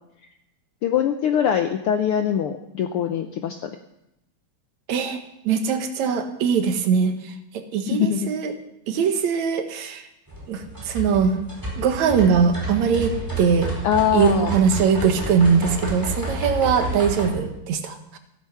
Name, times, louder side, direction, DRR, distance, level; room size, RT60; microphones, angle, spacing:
voice 1, 0.8-3.7 7.9-8.3 13.8-14.6, left 9 dB, 75° left, 7 dB, 1.3 m, -22 dB
voice 2, 4.9-5.2 5.5-7.1 7.5-8.5 8.9-10.0 10.5-11.4 11.8-13.7 14.1-18.2, right 6 dB, 75° right, 7 dB, 2.5 m, -21 dB
sound 1, 10.3-17.3, right 1 dB, 5° right, 4.4 m, -30 dB
15.0 x 13.0 x 5.7 m, 0.88 s
omnidirectional pair, 3.3 m